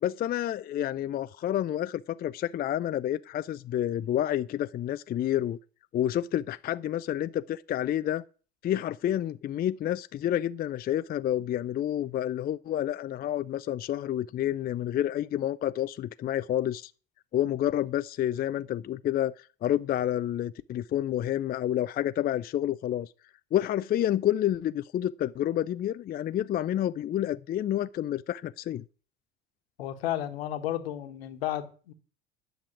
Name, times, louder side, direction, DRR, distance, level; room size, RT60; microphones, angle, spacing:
voice 1, 0.0-5.6 5.9-8.2 8.6-16.9 17.3-23.1 23.5-28.8, left 12 dB, 30° left, 0.5 m, -29 dB
voice 2, 29.8-31.9, left 12 dB, 70° left, 1.4 m, -33 dB
10.0 x 6.6 x 9.0 m
figure-of-eight pair, 60°, 32 cm